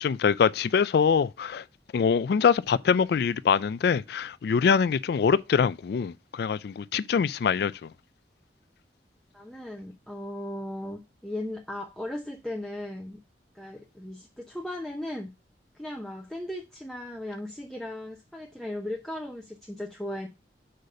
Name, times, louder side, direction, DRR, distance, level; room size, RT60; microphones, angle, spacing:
voice 1, 0.0-1.6 1.9-7.7, left 6 dB, 60° left, 0.3 m, -24 dB
voice 2, 9.3-13.2 13.5-15.3 15.7-20.3, left 1 dB, 5° left, 0.7 m, -37 dB
6.5 x 4.1 x 6.5 m
head